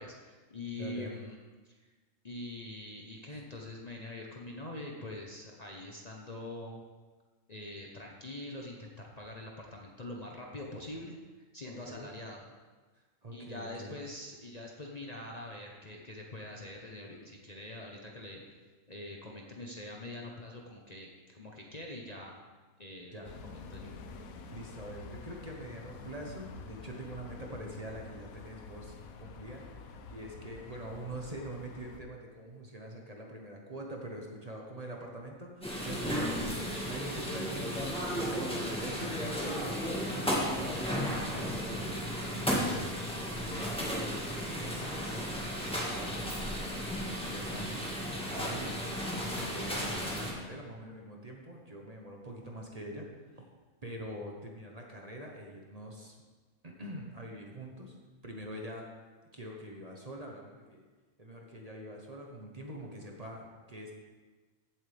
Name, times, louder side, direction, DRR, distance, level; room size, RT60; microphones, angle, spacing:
voice 1, 0.0-1.4 1.6-1.9 2.2-6.8 7.5-11.1 11.5-12.4 13.3-18.4 18.9-22.4 22.8-23.1 23.5-23.9, left 1 dB, 35° left, -1 dB, 1.0 m, -44 dB
voice 2, 0.7-1.2 3.3-3.4 11.7-12.1 12.9-14.0 23.1-23.3 24.5-53.5 53.8-56.1 56.6-58.0 58.2-58.9 59.3-60.8 61.2-63.9, right 1 dB, 30° right, 0 dB, 1.2 m, -45 dB
sound 1, 23.2-32.0, left 4 dB, 90° left, 1.2 m, -48 dB
sound 2, 35.6-50.3, equal, 5° left, 1.7 m, -34 dB
15.5 x 7.7 x 3.5 m, 1.3 s
omnidirectional pair, 1.4 m